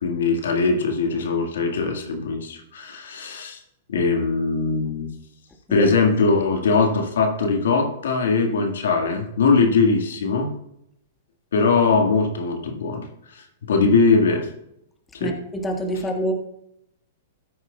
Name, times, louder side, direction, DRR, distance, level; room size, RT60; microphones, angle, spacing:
voice 1, 0.0-3.6 3.9-5.1 5.7-10.5 11.5-13.1 13.3-14.5 15.1-15.3, left 4 dB, 80° left, 3 dB, 1.8 m, -21 dB
voice 2, 15.2-16.3, equal, 10° left, 1 dB, 1.8 m, -26 dB
14.0 x 9.7 x 2.4 m, 0.80 s
hypercardioid pair, 120°, 0 cm